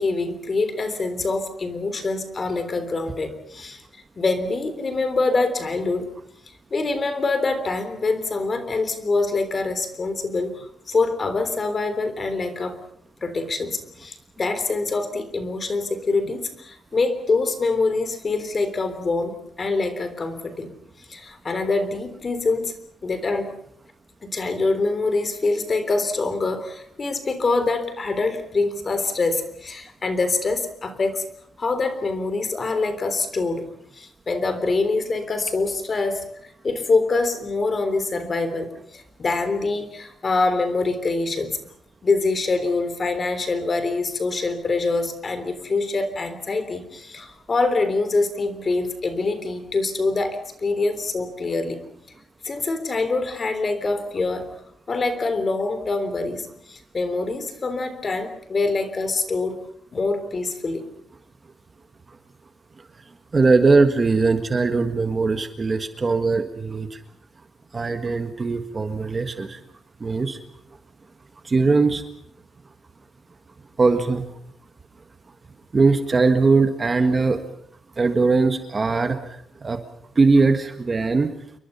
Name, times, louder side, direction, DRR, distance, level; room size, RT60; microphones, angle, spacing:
voice 1, 0.0-3.8 4.2-6.1 6.7-12.8 13.2-22.7 23.0-23.5 24.2-31.2 31.6-33.7 33.9-41.6 42.0-51.8 52.4-54.6 54.9-59.6 59.9-60.9, left 3 dB, 30° left, 10 dB, 3.5 m, -25 dB
voice 2, 63.3-66.9 67.7-69.6 70.0-70.4 71.5-72.0 73.8-74.2 75.7-77.4 78.0-79.2 79.6-79.8 80.2-81.3, right 4 dB, 25° right, 7 dB, 1.6 m, -20 dB
29.0 x 23.5 x 5.7 m, 0.69 s
wide cardioid pair, 160°, 0 cm